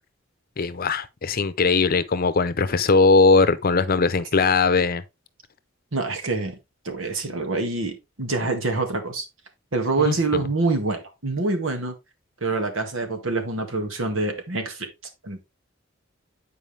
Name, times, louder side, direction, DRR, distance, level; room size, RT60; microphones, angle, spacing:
voice 1, 0.6-5.0 10.0-10.4, left 4 dB, 50° left, 0.7 m, -20 dB
voice 2, 5.9-6.6 6.9-9.3 9.7-11.9 12.4-14.9 15.2-15.5, right 3 dB, 80° right, 1.9 m, -26 dB
9.1 x 4.8 x 3.3 m
head